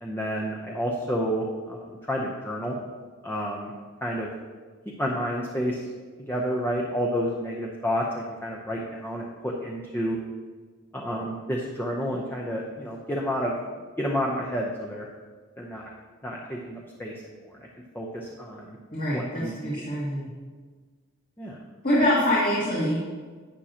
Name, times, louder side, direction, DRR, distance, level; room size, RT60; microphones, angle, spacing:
voice 1, 0.0-2.8 3.2-3.7 4.0-4.3 5.0-5.9 6.2-10.2 10.9-13.5 14.0-15.1 15.6-15.9 16.2-17.7 17.9-18.8 19.1-19.9 21.4-21.6, equal, 10° left, -2 dB, 0.8 m, -30 dB
voice 2, 18.9-20.3 21.8-23.0, left 1 dB, 40° left, -8 dB, 2.1 m, -24 dB
11.5 x 8.7 x 2.9 m, 1.5 s
head